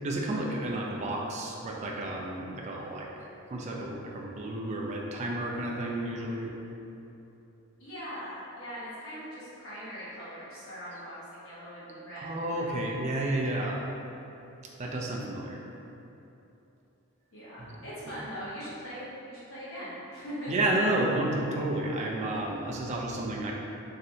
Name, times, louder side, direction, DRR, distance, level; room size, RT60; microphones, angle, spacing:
voice 1, 0.0-3.1 3.5-6.5 12.2-13.8 14.8-15.7 17.6-17.7 18.1-18.2 20.5-23.6, right 1 dB, 30° right, -2 dB, 0.3 m, -31 dB
voice 2, 7.8-12.8 17.3-20.5, equal, 65° left, -11 dB, 1.2 m, -41 dB
3.1 x 2.6 x 2.7 m, 2.9 s
head